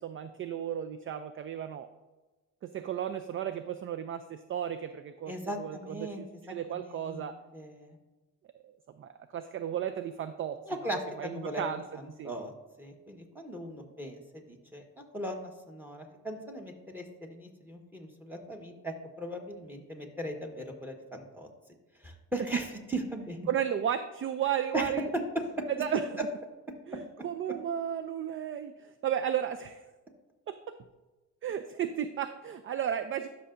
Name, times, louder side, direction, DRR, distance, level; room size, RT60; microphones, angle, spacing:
voice 1, 0.0-1.9 2.6-7.3 8.6-10.6 10.8-11.8 12.2-12.3 23.5-25.1 25.8-26.0 26.9-29.8 30.5-30.6 31.4-33.3, right 9 dB, 45° right, 10 dB, 0.4 m, -34 dB
voice 2, 5.3-6.2 6.7-8.0 10.7-11.6 11.9-12.5 12.8-14.8 15.1-21.5 22.0-23.4 24.7-25.2, right 1 dB, 5° right, 3 dB, 1.3 m, -38 dB
12.5 x 5.7 x 2.6 m, 1.2 s
cardioid pair, 90°, 30 cm